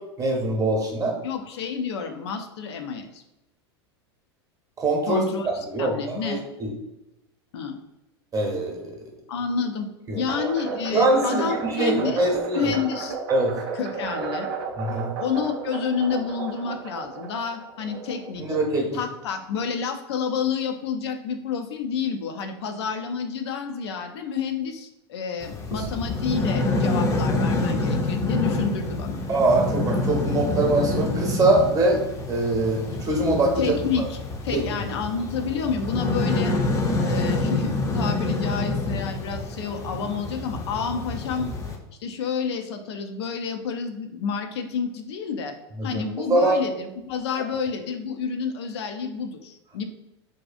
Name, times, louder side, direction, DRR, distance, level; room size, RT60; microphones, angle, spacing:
voice 1, 0.2-1.1 4.8-5.2 5.7-6.7 8.3-8.7 10.1-10.2 10.9-12.6 13.3-13.6 14.8-15.1 18.4-19.0 25.7-25.8 29.3-32.0 32.3-33.7 34.5-34.6 45.8-46.0 46.3-46.6, right 2 dB, 25° right, 1 dB, 0.8 m, -23 dB
voice 2, 1.2-3.2 5.1-6.4 7.5-7.8 9.3-9.9 10.1-12.3 12.5-13.2 13.7-14.5 15.2-18.5 18.9-29.2 33.6-34.2 34.4-36.6 37.0-41.5 42.0-45.6 45.8-49.9, left 6 dB, 75° left, 6 dB, 0.4 m, -29 dB
sound 1, 10.3-18.6, right 5 dB, 60° right, 0.5 m, -33 dB
sound 2, 25.4-41.8, left 2 dB, 25° left, 0.5 m, -27 dB
2.6 x 2.3 x 2.4 m, 0.94 s
hypercardioid pair, 100°, 14 cm